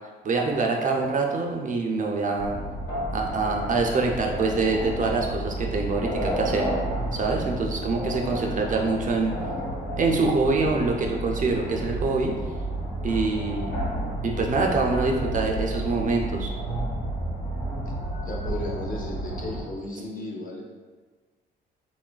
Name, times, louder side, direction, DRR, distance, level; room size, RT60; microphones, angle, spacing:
voice 1, 0.2-2.6 3.1-6.7 7.1-9.3 10.0-12.3 13.0-13.8 14.2-16.5, right 3 dB, 40° right, 1 dB, 0.4 m, -25 dB
sound 1, 2.4-19.6, right 1 dB, 65° left, 1.0 m, -31 dB
voice 2, 18.2-20.6, left 1 dB, 45° left, -2 dB, 0.6 m, -34 dB
3.0 x 2.3 x 2.2 m, 1.4 s
cardioid pair, 90°, 20 cm